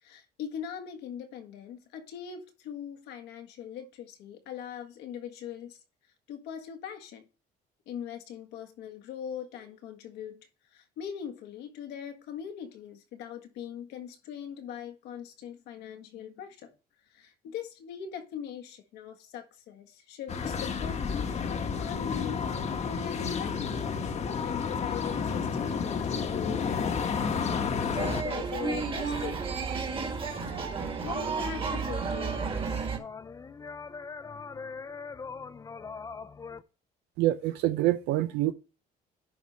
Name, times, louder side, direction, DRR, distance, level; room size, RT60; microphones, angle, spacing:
voice 1, 0.0-5.8 6.3-7.2 7.8-16.7 17.0-23.9 24.1-29.6 31.0-32.9, left 8 dB, 90° left, 1.6 m, -41 dB
sound 1, 20.3-28.2, left 6 dB, 40° left, 1.1 m, -31 dB
sound 2, 28.0-33.0, right 5 dB, 30° right, 1.6 m, -32 dB
sound 3, 30.0-36.6, left 5 dB, 20° left, 0.5 m, -43 dB
voice 2, 37.2-38.5, right 15 dB, 85° right, 0.5 m, -26 dB
11.0 x 4.8 x 4.1 m
cardioid pair, 110°, 17 cm